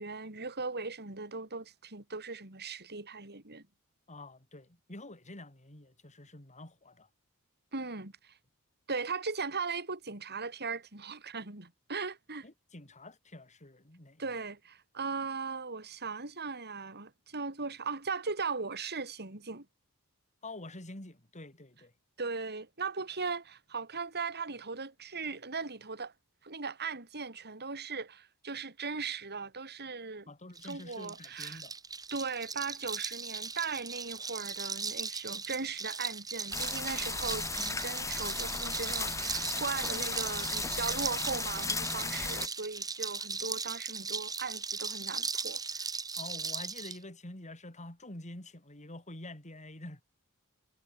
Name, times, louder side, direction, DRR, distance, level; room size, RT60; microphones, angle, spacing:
voice 1, 0.0-3.6 7.7-8.4 8.9-12.5 14.2-19.6 22.2-26.1 26.4-30.3 30.6-31.6 32.1-45.9, right 4 dB, 50° right, 5.0 m, -38 dB
voice 2, 4.1-7.1 12.4-14.2 20.4-21.9 30.3-31.7 46.2-50.0, left 2 dB, 35° left, 4.4 m, -47 dB
sound 1, 30.6-47.0, right 5 dB, 15° right, 2.1 m, -38 dB
sound 2, 36.5-42.5, left 4 dB, 15° left, 1.1 m, -36 dB
head